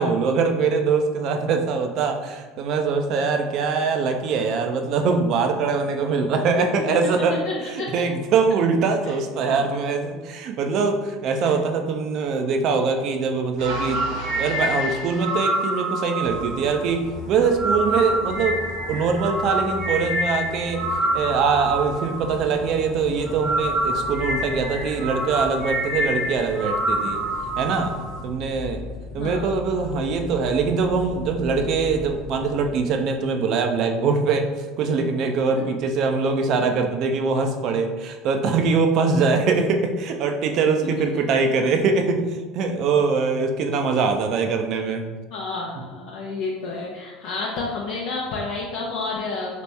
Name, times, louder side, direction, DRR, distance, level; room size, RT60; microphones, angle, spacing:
voice 1, 0.0-7.4 7.9-14.1 14.3-18.6 18.9-20.9 21.1-27.2 27.6-27.9 28.2-28.8 29.1-34.5 34.8-45.0, right 4 dB, 55° right, 5 dB, 0.5 m, -23 dB
voice 2, 7.4-8.0 9.0-9.2 9.5-9.6 11.4-11.5 29.2-29.5 35.5-35.6 43.8-43.9 45.3-49.6, left 3 dB, 60° left, -4 dB, 0.6 m, -30 dB
sound 1, 13.6-22.8 23.2-28.2, right 1 dB, 70° right, 1.0 m, -27 dB
sound 2, 16.2-32.9, left 2 dB, 10° left, 0.7 m, -38 dB
2.9 x 2.9 x 3.4 m, 1.3 s
hypercardioid pair, 70°, 0 cm